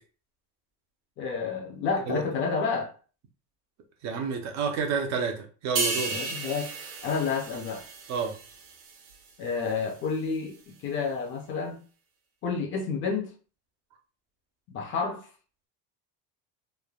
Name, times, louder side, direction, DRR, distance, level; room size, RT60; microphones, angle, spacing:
voice 1, 1.2-2.9 6.1-6.7 7.0-7.8 9.4-11.8 12.4-13.3 14.7-15.3, left 5 dB, 35° left, 2 dB, 0.5 m, -30 dB
voice 2, 4.0-6.2 8.1-8.3, right 5 dB, 55° right, 4 dB, 0.6 m, -29 dB
sound 1, 5.8-9.3 9.7-9.9, right 3 dB, 85° right, 0.8 m, -34 dB
3.2 x 2.1 x 2.3 m, 0.37 s
cardioid pair, 160°, 34 cm